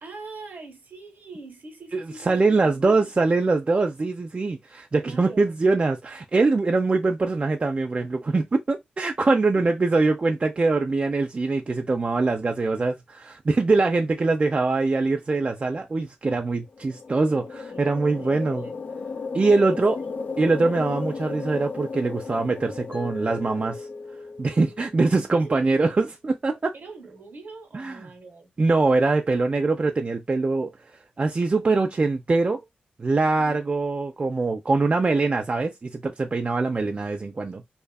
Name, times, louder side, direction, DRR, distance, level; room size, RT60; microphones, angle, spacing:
voice 1, 0.0-3.1 5.0-5.6 9.5-9.8 17.7-19.0 19.5-20.4 25.4-25.7 26.7-28.5 33.4-33.7, right 3 dB, 65° right, 1.0 m, -43 dB
voice 2, 1.9-18.7 19.3-20.0 20.4-23.9 24.4-26.7 27.7-28.1 28.6-30.7 31.2-32.6 33.0-37.6, right 3 dB, 40° right, 0.4 m, -23 dB
sound 1, 16.7-24.4, left 4 dB, 55° left, 0.4 m, -35 dB
Mallet percussion, 22.9-25.8, left 3 dB, 35° left, 0.9 m, -40 dB
2.5 x 2.4 x 2.3 m
supercardioid pair, 40°, 4 cm